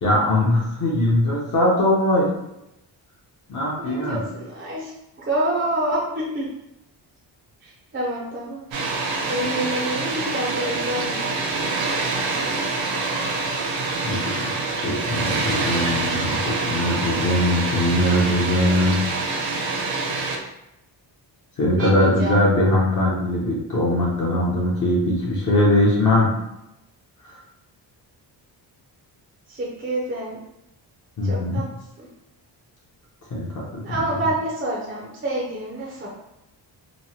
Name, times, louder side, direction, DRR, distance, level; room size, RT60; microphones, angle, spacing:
voice 1, 0.0-2.3 3.5-4.2 14.0-14.4 14.8-19.0 21.6-26.3 27.3-27.4 31.2-31.6 33.3-34.0, left 1 dB, 45° left, -5 dB, 0.6 m, -21 dB
voice 2, 3.8-4.9 5.2-6.5 7.6-8.6 9.3-11.4 21.8-22.4 29.5-30.4 31.2-31.7 32.0-32.1 33.8-36.1, right 1 dB, 30° right, -4 dB, 0.5 m, -27 dB
Water, 8.7-20.4, right 3 dB, 85° right, 0.6 m, -26 dB
3.0 x 2.1 x 2.7 m, 0.86 s
wide cardioid pair, 150°, 44 cm